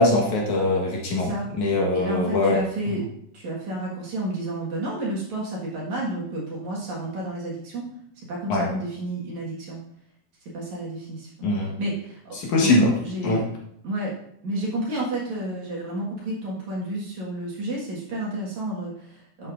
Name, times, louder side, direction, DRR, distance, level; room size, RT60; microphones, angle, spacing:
voice 1, 0.0-1.3 1.6-2.6 8.5-8.7 11.4-11.7 12.4-12.9 13.2-13.4, left 2 dB, 60° left, -2 dB, 2.5 m, -21 dB
voice 2, 1.1-1.5 1.9-3.1 3.3-7.9 8.3-9.8 10.5-11.3 11.6-12.8 13.0-13.5 13.8-14.1 14.4-19.5, right 1 dB, 55° right, -4 dB, 2.7 m, -31 dB
11.5 x 8.0 x 2.6 m, 0.72 s
omnidirectional pair, 4.3 m